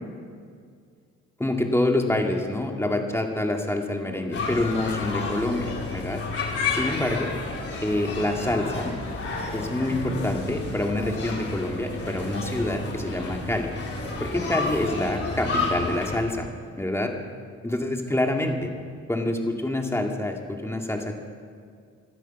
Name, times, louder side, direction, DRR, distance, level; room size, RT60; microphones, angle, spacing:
voice 1, 1.4-6.2 6.7-7.3 7.8-8.9 9.5-13.7 14.2-16.5 16.8-17.1 17.6-18.7 19.1-21.2, left 1 dB, 10° left, 2 dB, 2.2 m, -26 dB
sound 1, 4.3-16.2, left 3 dB, 50° left, 4.6 m, -31 dB
18.5 x 12.5 x 6.0 m, 2.1 s
cardioid pair, 90°, 30 cm